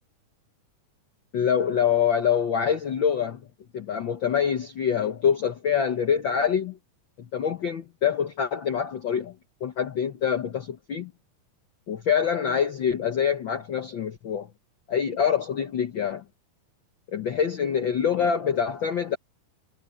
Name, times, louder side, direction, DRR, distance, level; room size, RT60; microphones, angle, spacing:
voice 1, 1.3-3.4 3.7-6.8 7.2-9.3 9.6-11.1 11.9-14.5 14.9-16.2 17.1-19.2, left 7 dB, 75° left, 1.1 m, -25 dB
omnidirectional pair, 3.8 m